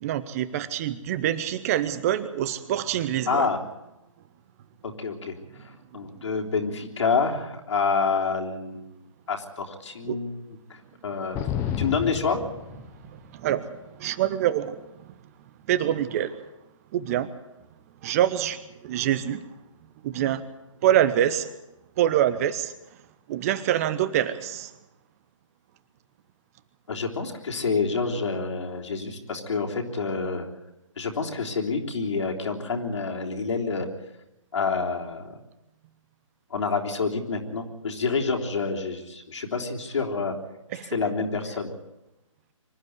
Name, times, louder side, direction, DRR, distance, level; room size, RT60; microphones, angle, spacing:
voice 1, 0.0-3.5 10.1-10.2 11.6-11.7 13.3-13.7 14.0-14.8 15.7-16.3 16.9-17.3 18.0-19.4 20.0-20.4 20.8-21.5 22.0-22.7 23.3-24.7 40.7-40.9, right 11 dB, 30° right, 14 dB, 0.9 m, -25 dB
voice 2, 3.3-3.6 4.8-5.3 5.6-9.0 9.3-10.4 10.7-11.4 11.8-12.4 26.9-30.5 31.0-33.9 34.5-35.4 36.5-40.3 40.9-41.7, left 4 dB, 60° left, 1 dB, 3.6 m, -28 dB
sound 1, 11.3-13.3, left 9 dB, 15° left, 0.9 m, -31 dB
25.0 x 12.0 x 9.6 m, 0.96 s
figure-of-eight pair, 140°, 17 cm